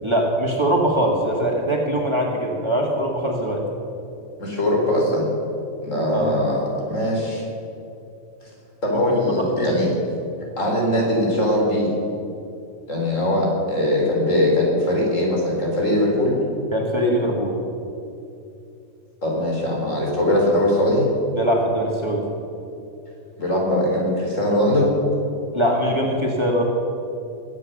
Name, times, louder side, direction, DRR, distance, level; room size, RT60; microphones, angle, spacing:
voice 1, 0.0-3.7 6.1-6.3 9.1-9.8 16.7-17.6 21.3-22.3 25.5-26.6, equal, 20° right, -1 dB, 2.0 m, -22 dB
voice 2, 4.4-5.3 5.8-7.4 8.8-9.9 10.6-11.9 12.9-16.4 19.2-21.1 23.4-25.0, left 1 dB, 65° left, -2 dB, 4.0 m, -21 dB
21.0 x 8.4 x 6.6 m, 2.7 s
omnidirectional pair, 1.4 m